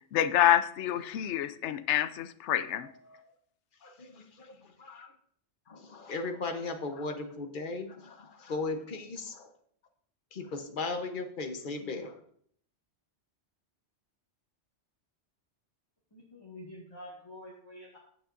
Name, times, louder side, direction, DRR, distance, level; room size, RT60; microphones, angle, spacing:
voice 1, 0.1-2.9, left 11 dB, 75° left, 14 dB, 0.9 m, -27 dB
voice 2, 3.8-5.1 5.7-9.5 10.3-12.2, left 3 dB, 45° left, 6 dB, 1.0 m, -37 dB
voice 3, 16.1-18.0, left 1 dB, 20° left, -5 dB, 1.9 m, -47 dB
16.0 x 6.1 x 2.5 m, 0.63 s
omnidirectional pair, 1.2 m